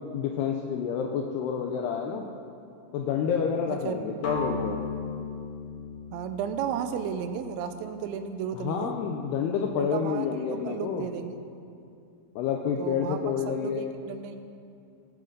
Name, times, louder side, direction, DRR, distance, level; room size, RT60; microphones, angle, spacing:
voice 1, 0.1-2.3 2.9-4.8 8.5-11.1 12.4-14.0, left 7 dB, 85° left, 2 dB, 2.3 m, -29 dB
sound 1, 4.2-8.2, left 3 dB, 60° left, 1.7 m, -36 dB
voice 2, 6.1-8.9 9.8-11.4 12.8-13.2 13.6-14.4, right 8 dB, 85° right, 8 dB, 2.8 m, -33 dB
20.5 x 7.6 x 3.9 m, 2.5 s
omnidirectional pair, 5.4 m